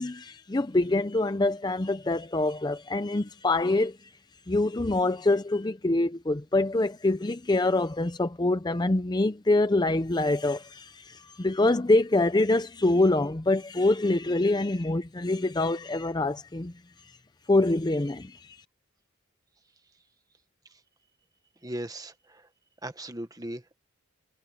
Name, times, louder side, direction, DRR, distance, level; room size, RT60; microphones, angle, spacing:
voice 1, 0.0-4.1 4.5-16.7 17.5-18.6, left 2 dB, 20° left, 0.5 m, -25 dB
voice 2, 21.6-22.4 22.8-23.8, right 1 dB, 20° right, 1.4 m, -38 dB
head